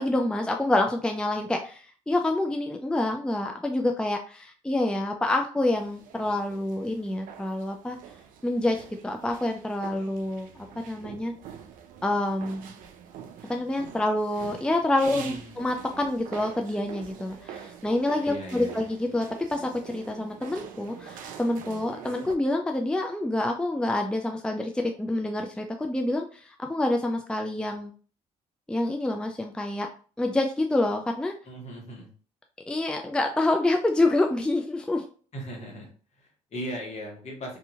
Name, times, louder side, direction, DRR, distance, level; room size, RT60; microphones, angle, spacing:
voice 1, 0.0-8.0 8.4-10.5 10.9-11.3 12.0-12.7 13.5-27.9 28.7-29.9 30.2-31.3 32.7-35.0, left 2 dB, 5° left, 4 dB, 0.4 m, -27 dB
sound 1, 5.8-22.4, right 8 dB, 70° right, 0.4 m, -45 dB
voice 2, 15.1-15.5 18.2-18.8 31.4-32.1 35.3-37.6, equal, 50° left, -1 dB, 1.3 m, -38 dB
2.7 x 2.6 x 2.4 m, 0.41 s
supercardioid pair, 60°, 15 cm